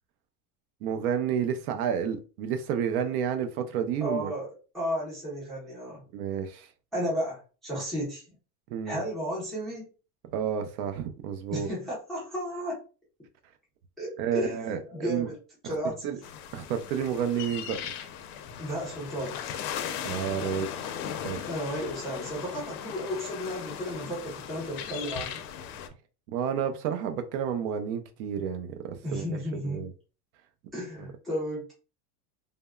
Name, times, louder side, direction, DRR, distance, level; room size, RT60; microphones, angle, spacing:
voice 1, 0.8-4.3 6.1-6.7 8.7-9.0 10.3-11.7 14.2-15.3 15.6-16.2 16.5-17.9 20.0-20.7 21.2-21.5 26.3-29.4 29.6-29.9, right 8 dB, 65° right, 0.5 m, -30 dB
voice 2, 4.0-4.5 4.7-6.0 6.9-8.2 8.8-9.9 11.5-12.8 14.0-15.4 15.6-16.2 18.6-19.4 21.4-25.4 29.0-29.8 30.7-31.7, equal, ahead, 0.4 m, -33 dB
sound 1, 16.2-25.9, left 8 dB, 70° left, 0.6 m, -38 dB
3.4 x 2.0 x 2.2 m
supercardioid pair, 165°, 48 cm